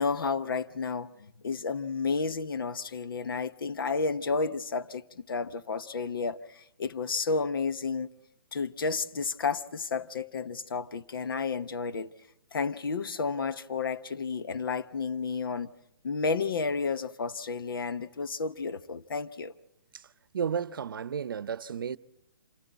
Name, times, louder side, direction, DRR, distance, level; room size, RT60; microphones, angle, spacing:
voice 1, 0.0-8.1 8.5-12.1 12.5-15.7 16.0-19.5, left 4 dB, 70° left, 1.0 m, -31 dB
voice 2, 20.3-22.0, right 7 dB, 70° right, 0.7 m, -33 dB
27.0 x 15.0 x 8.1 m
hypercardioid pair, 160°, 12 cm